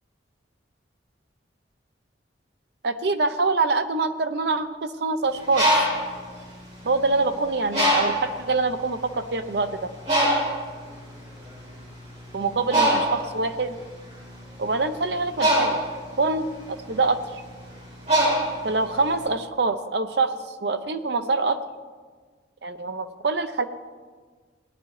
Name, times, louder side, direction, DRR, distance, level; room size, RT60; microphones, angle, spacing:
voice 1, 2.8-5.7 6.8-9.9 12.3-13.8 14.6-15.9 16.2-16.5 16.9-17.4 18.6-21.6 22.6-23.7, right 3 dB, 60° right, 9 dB, 0.6 m, -25 dB
Bird, 5.3-7.2 7.7-8.4 9.1-9.2 9.5-19.2, right 1 dB, 35° right, 4.2 m, -24 dB
18.0 x 10.0 x 3.2 m, 1.5 s
head